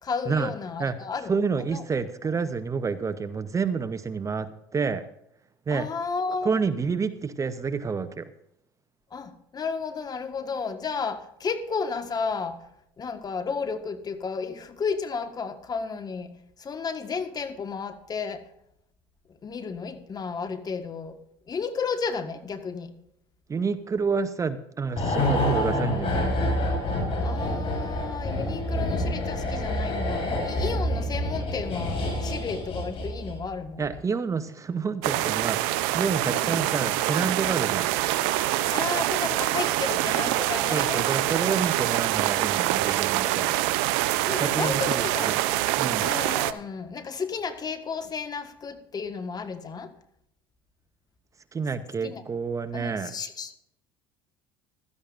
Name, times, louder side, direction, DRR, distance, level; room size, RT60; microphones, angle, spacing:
voice 1, 0.0-1.3 1.6-1.8 5.7-6.5 9.1-12.6 13.0-16.3 16.6-18.4 19.3-21.2 21.5-22.9 27.2-33.9 36.3-36.5 38.7-41.1 44.3-45.4 46.0-49.9 52.0-52.2 52.7-53.6, left 5 dB, 35° left, 9 dB, 1.5 m, -32 dB
voice 2, 1.3-5.0 5.7-5.9 6.4-8.3 23.5-26.4 33.8-37.9 40.7-43.5 44.4-45.4 45.8-46.1 51.5-53.1, right 5 dB, 25° right, 12 dB, 0.8 m, -29 dB
sound 1, 25.0-33.5 33.8-33.9, left 1 dB, 50° left, 5.7 m, -27 dB
sound 2, 35.0-46.5, right 15 dB, 75° right, 0.7 m, -25 dB
16.0 x 13.0 x 2.6 m, 0.76 s
hypercardioid pair, 80°, 12 cm